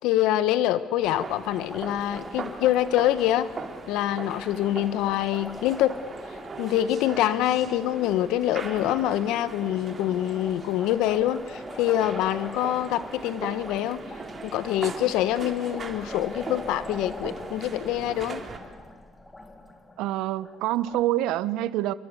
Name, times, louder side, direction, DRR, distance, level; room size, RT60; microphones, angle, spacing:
voice 1, 0.0-3.5 3.9-6.0 6.6-14.0 14.4-18.4, left 12 dB, 80° left, 1.3 m, -25 dB
sound 1, 1.0-18.6, right 4 dB, 40° right, 4.3 m, -40 dB
Liquid, 1.5-21.0, left 2 dB, 20° left, 3.2 m, -44 dB
voice 2, 20.0-21.9, right 14 dB, 80° right, 0.9 m, -26 dB
28.0 x 24.5 x 8.3 m
supercardioid pair, 80°, 0 cm